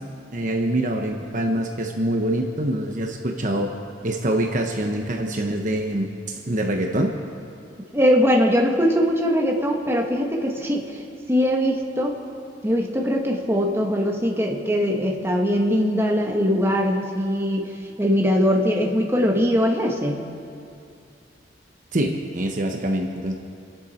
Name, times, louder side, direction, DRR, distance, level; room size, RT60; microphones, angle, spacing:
voice 1, 0.3-3.7 4.0-7.1 21.9-23.3, right 1 dB, 45° right, 2 dB, 1.1 m, -25 dB
voice 2, 7.9-11.0 11.3-12.1 12.6-20.3, equal, 15° right, 0 dB, 1.7 m, -21 dB
29.5 x 11.0 x 4.4 m, 2.5 s
head